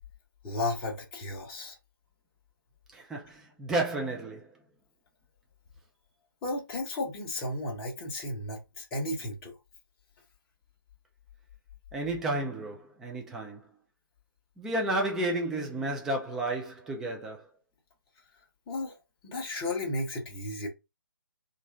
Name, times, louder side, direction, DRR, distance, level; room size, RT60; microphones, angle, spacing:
voice 1, 0.4-1.8 6.4-9.5 18.7-19.0 19.2-20.7, left 2 dB, 15° left, 1.0 m, -34 dB
voice 2, 2.9-4.5 11.9-13.6 14.6-17.5, right 2 dB, 5° right, 0.3 m, -32 dB
2.9 x 2.5 x 3.6 m
figure-of-eight pair, 145°, 12 cm